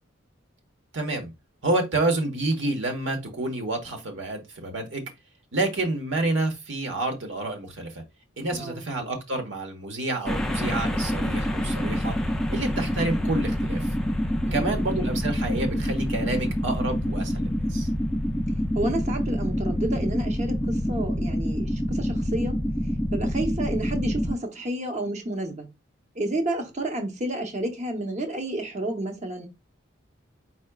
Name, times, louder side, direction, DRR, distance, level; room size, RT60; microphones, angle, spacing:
voice 1, 0.9-1.3 1.6-5.0 5.5-8.0 8.4-12.1 12.5-13.8 14.5-17.9, right 2 dB, 65° right, 1.2 m, -28 dB
voice 2, 8.5-8.8 14.4-14.8 18.7-22.6 23.1-25.7 26.1-29.5, right 1 dB, 35° right, 0.8 m, -30 dB
sound 1, 10.3-24.3, equal, 5° left, 0.4 m, -26 dB
4.7 x 4.1 x 2.3 m
head